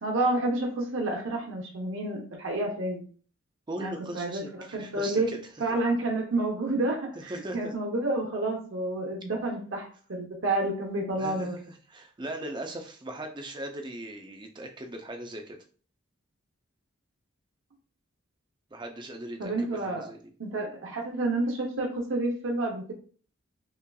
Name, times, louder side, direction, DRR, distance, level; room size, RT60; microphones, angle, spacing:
voice 1, 0.0-3.1 3.8-5.3 5.6-11.5 19.4-20.1 20.4-22.9, right 2 dB, 65° right, 0 dB, 0.8 m, -29 dB
voice 2, 3.7-5.4 5.7-5.8 7.3-7.7 11.2-15.6 18.7-20.3, right 1 dB, 20° right, 4 dB, 0.5 m, -39 dB
5.3 x 2.4 x 2.3 m, 0.43 s
head